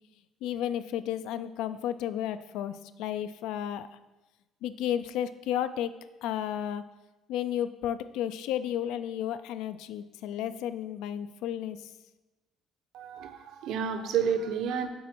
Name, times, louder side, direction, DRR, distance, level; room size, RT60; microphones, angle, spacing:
voice 1, 0.4-3.9 4.6-5.9 6.2-6.9 7.3-11.8, left 10 dB, 90° left, 12 dB, 0.3 m, -32 dB
voice 2, 12.9-14.9, right 7 dB, 70° right, 7 dB, 0.7 m, -30 dB
8.2 x 4.2 x 4.4 m, 1.1 s
cardioid pair, 155°, 0 cm